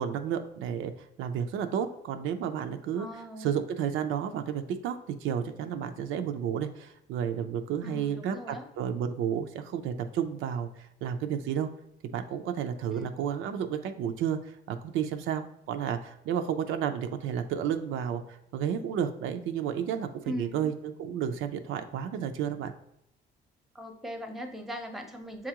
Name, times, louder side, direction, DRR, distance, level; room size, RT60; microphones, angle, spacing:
voice 1, 0.0-11.7 12.1-22.7, right 8 dB, 85° right, 7 dB, 0.4 m, -32 dB
voice 2, 3.0-3.5 7.8-8.7 12.9-13.2 20.2-20.7 23.7-25.5, equal, ahead, 4 dB, 0.7 m, -40 dB
7.0 x 2.4 x 2.8 m, 0.79 s
cardioid pair, 90°, 20 cm